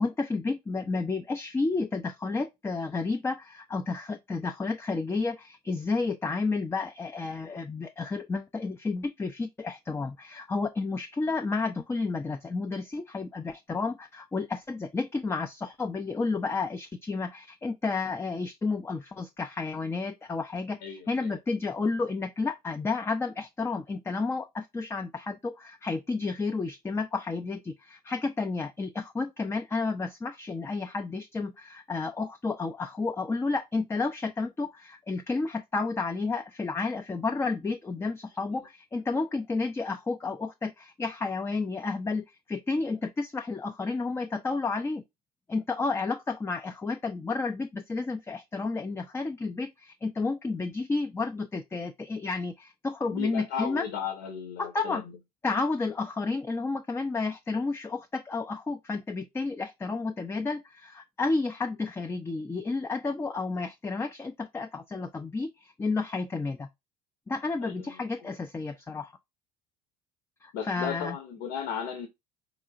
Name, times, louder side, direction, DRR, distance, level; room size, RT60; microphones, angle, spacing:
voice 1, 0.0-45.0 45.5-53.8 54.6-55.0 55.4-66.7 67.3-69.1 70.4-71.2, left 3 dB, 10° left, 0.4 m, -31 dB
voice 2, 20.8-21.3 38.5-38.6 53.1-55.2 67.6-68.3 70.5-72.1, left 7 dB, 60° left, 0.9 m, -36 dB
4.4 x 3.0 x 2.4 m
figure-of-eight pair, 60°, 21 cm